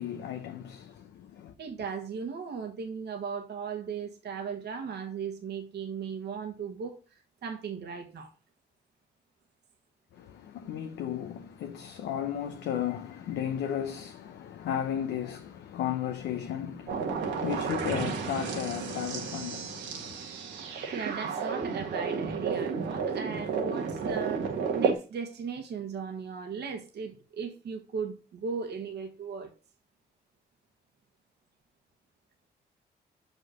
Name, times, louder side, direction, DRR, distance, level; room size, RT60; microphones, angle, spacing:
voice 1, 0.0-1.5 10.1-20.1, left 9 dB, 90° left, 0.8 m, -34 dB
voice 2, 1.6-8.3 20.9-29.5, right 6 dB, 70° right, 1.3 m, -37 dB
sound 1, 16.9-24.9, right 5 dB, 85° right, 1.5 m, -32 dB
6.0 x 5.6 x 6.2 m
cardioid pair, 65°, 18 cm